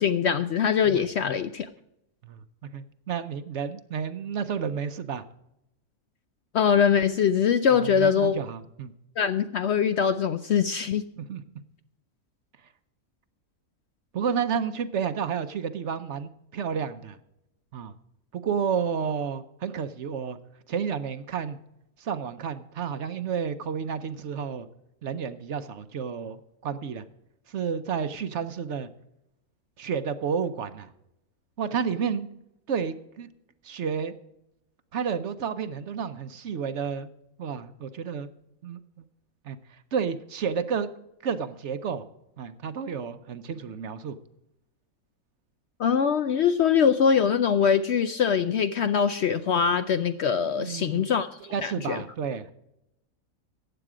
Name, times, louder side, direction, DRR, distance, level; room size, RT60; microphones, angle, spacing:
voice 1, 0.0-1.7 6.5-8.4 9.2-11.0 45.8-51.3 51.6-52.0, left 7 dB, 65° left, 11 dB, 0.7 m, -23 dB
voice 2, 2.2-5.2 7.7-8.9 11.2-11.4 14.1-17.2 17.7-17.9 18.3-20.4 20.7-21.6 22.0-24.7 25.0-27.0 27.5-28.9 29.8-30.9 31.6-32.3 32.7-33.3 33.6-34.1 34.9-37.1 37.4-38.3 38.6-39.0 39.4-40.9 41.2-42.0 42.4-44.2 50.6-51.1 51.5-52.5, right 7 dB, 60° right, 12 dB, 0.9 m, -31 dB
15.0 x 9.0 x 4.9 m, 0.83 s
omnidirectional pair, 1.5 m